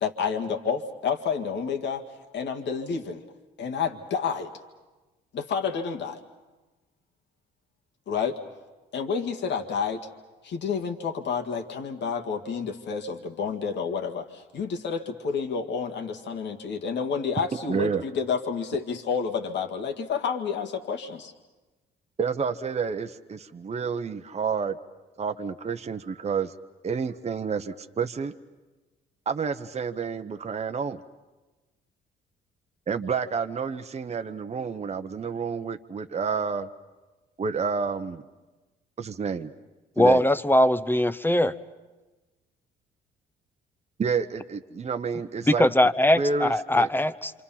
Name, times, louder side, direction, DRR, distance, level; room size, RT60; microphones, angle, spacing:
voice 1, 0.0-2.0 2.3-3.2 3.6-4.6 5.3-6.2 8.1-8.4 8.9-10.0 10.4-21.3, left 6 dB, 65° left, 5 dB, 2.0 m, -29 dB
voice 2, 17.7-18.0 22.2-24.8 25.2-26.5 26.8-28.3 29.3-31.0 32.9-36.7 37.4-38.2 39.0-39.5 40.0-40.3 44.0-45.7 46.2-46.9, right 5 dB, 35° right, 7 dB, 0.9 m, -29 dB
voice 3, 40.0-41.5 45.5-47.3, left 1 dB, 10° left, 13 dB, 0.8 m, -21 dB
27.0 x 26.5 x 5.7 m, 1.2 s
supercardioid pair, 70°, 20 cm